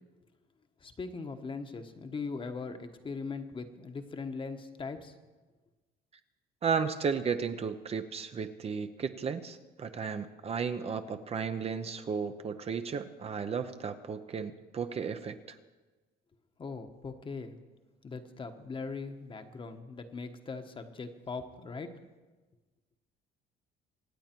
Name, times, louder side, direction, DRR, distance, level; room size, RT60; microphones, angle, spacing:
voice 1, 0.8-5.1 16.6-17.6 18.0-21.9, left 4 dB, 30° left, 7 dB, 1.2 m, -40 dB
voice 2, 6.6-15.6, right 6 dB, 35° right, 9 dB, 0.8 m, -34 dB
24.5 x 8.8 x 4.5 m, 1.2 s
cardioid pair, 110°, 17 cm